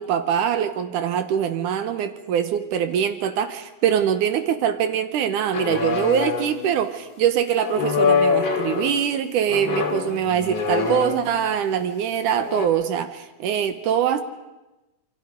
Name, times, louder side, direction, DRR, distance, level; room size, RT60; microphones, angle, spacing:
voice 1, 0.0-14.2, right 9 dB, 70° right, 10 dB, 2.0 m, -23 dB
sound 1, 5.5-6.7 7.6-9.0 9.5-11.5 12.3-12.7, left 6 dB, 45° left, 2.8 m, -24 dB
27.5 x 23.5 x 5.2 m, 1.0 s
omnidirectional pair, 4.7 m